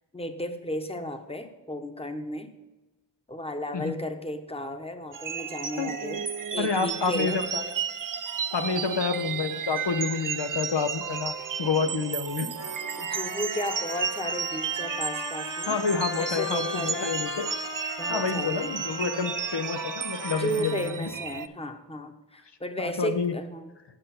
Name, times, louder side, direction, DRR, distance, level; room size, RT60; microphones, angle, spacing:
voice 1, 0.1-2.5 3.3-6.3 6.5-7.4 8.6-8.9 13.0-15.8 16.2-17.1 18.0-18.8 19.0-19.3 20.3-23.7, equal, 15° left, 7 dB, 1.0 m, -34 dB
sound 1, 5.1-21.5, right 7 dB, 50° right, 0.5 m, -33 dB
voice 2, 6.6-7.6 8.5-11.3 11.6-12.5 15.7-17.5 18.1-20.7 21.0-21.1 22.8-23.3, left 5 dB, 80° left, 7 dB, 0.8 m, -28 dB
Trumpet, 12.6-21.0, left 3 dB, 65° left, 2.1 m, -38 dB
9.2 x 6.6 x 5.8 m, 1.1 s
wide cardioid pair, 50°, 42 cm